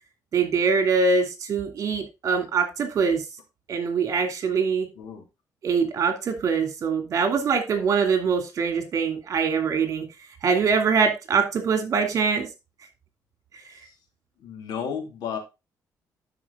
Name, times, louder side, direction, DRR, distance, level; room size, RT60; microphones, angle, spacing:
voice 1, 0.3-3.2 3.7-4.9 5.6-10.1 10.4-12.5, right 5 dB, 55° right, 6 dB, 2.6 m, -23 dB
voice 2, 14.4-15.4, left 7 dB, 90° left, 5 dB, 2.3 m, -32 dB
12.0 x 5.1 x 3.6 m, 0.25 s
cardioid pair, 135°, 7 cm